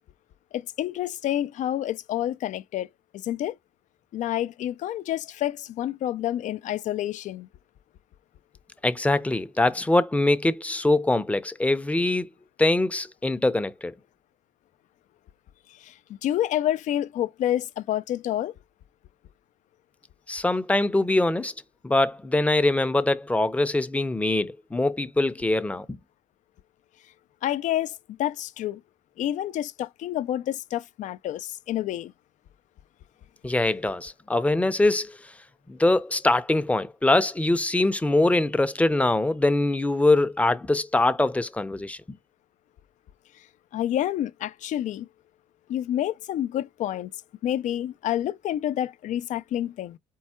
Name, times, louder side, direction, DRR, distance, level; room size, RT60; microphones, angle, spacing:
voice 1, 0.5-3.6 4.1-7.5 15.7-18.5 27.4-28.8 29.2-32.1 43.4-43.5 43.7-45.1 45.7-47.1 47.4-50.0, left 12 dB, 60° left, 0.4 m, -28 dB
voice 2, 8.8-12.3 12.6-13.9 20.3-21.5 21.8-26.0 33.4-35.3 35.7-42.0, left 2 dB, 10° left, 0.6 m, -23 dB
4.6 x 2.1 x 4.3 m
cardioid pair, 85°, 14 cm